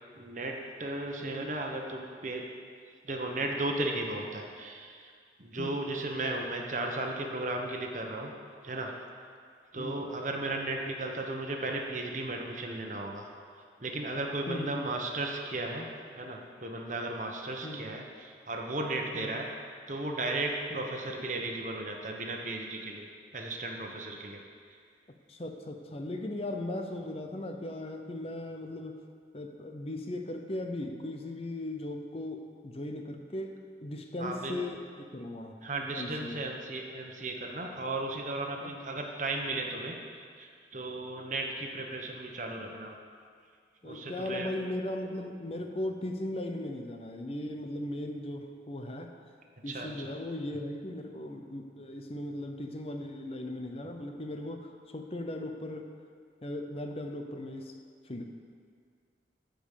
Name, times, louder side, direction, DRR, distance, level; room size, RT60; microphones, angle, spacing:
voice 1, 0.1-2.5 3.0-5.1 5.4-8.3 8.6-8.9 9.7-13.3 13.8-15.9 16.2-19.5 19.9-23.1 23.3-24.4 34.2-34.6 35.6-42.9 43.8-44.5 49.7-50.1, right 2 dB, 45° right, 2 dB, 1.2 m, -35 dB
voice 2, 14.5-14.9 17.6-17.8 19.1-19.3 20.8-20.9 25.3-29.0 29.3-35.5 35.9-36.4 38.6-38.7 43.8-49.1 49.6-55.9 56.4-57.8 58.0-58.2, left 1 dB, 35° left, 4 dB, 0.7 m, -38 dB
14.5 x 5.2 x 6.7 m, 2.1 s
head